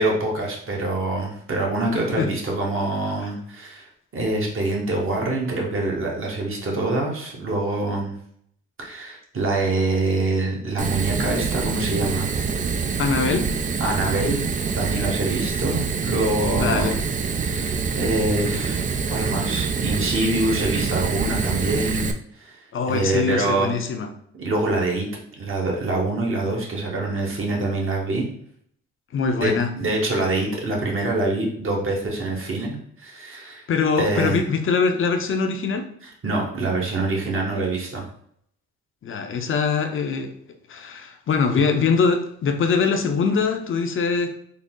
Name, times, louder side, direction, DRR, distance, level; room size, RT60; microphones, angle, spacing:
voice 1, 0.0-8.2 8.8-12.3 13.8-14.5 14.7-16.9 17.4-22.6 22.9-23.7 24.3-28.3 29.4-33.7 34.0-34.4 36.0-38.0, right 2 dB, 45° right, -1 dB, 1.2 m, -25 dB
Fire, 10.8-22.1, right 5 dB, 25° right, 0.3 m, -25 dB
voice 2, 13.0-13.5 16.6-17.0 22.7-24.1 29.1-29.7 33.4-35.9 39.0-40.3 40.7-44.3, left 5 dB, 45° left, 6 dB, 0.6 m, -23 dB
3.9 x 2.0 x 3.6 m, 0.67 s
cardioid pair, 90°, 30 cm